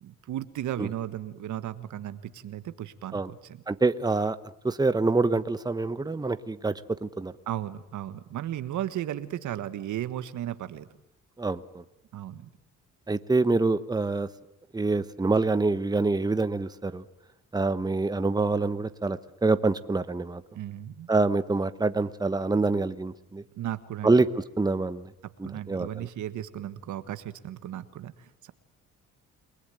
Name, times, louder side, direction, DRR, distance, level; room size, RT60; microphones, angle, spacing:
voice 1, 0.0-3.6 7.5-10.9 12.1-12.5 20.5-21.1 23.5-24.2 25.2-28.5, right 12 dB, 75° right, 12 dB, 1.6 m, -35 dB
voice 2, 3.7-4.4 4.6-7.3 11.4-11.8 13.1-14.3 14.7-17.0 17.5-20.4 21.1-23.4 24.0-24.3 24.6-25.1 25.4-25.9, right 3 dB, 15° right, 12 dB, 1.1 m, -26 dB
29.0 x 20.5 x 9.3 m, 0.89 s
cardioid pair, 90°, 30 cm